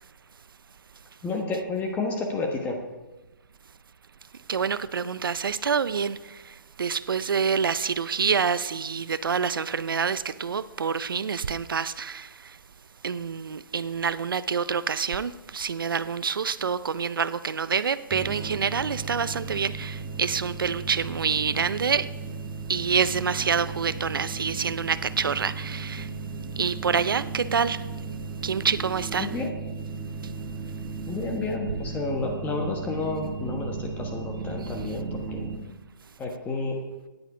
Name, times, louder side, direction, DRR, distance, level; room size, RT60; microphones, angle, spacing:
voice 1, 1.2-2.8 29.2-29.5 31.1-35.6 36.2-36.8, left 3 dB, 15° left, 1.2 m, -30 dB
voice 2, 4.5-12.6 13.0-22.1 22.7-26.1 26.6-27.8 28.4-29.4, right 6 dB, 85° right, 0.5 m, -27 dB
sound 1, 18.1-35.6, right 4 dB, 20° right, 1.4 m, -35 dB
13.0 x 9.7 x 4.9 m
hypercardioid pair, 145°, 11 cm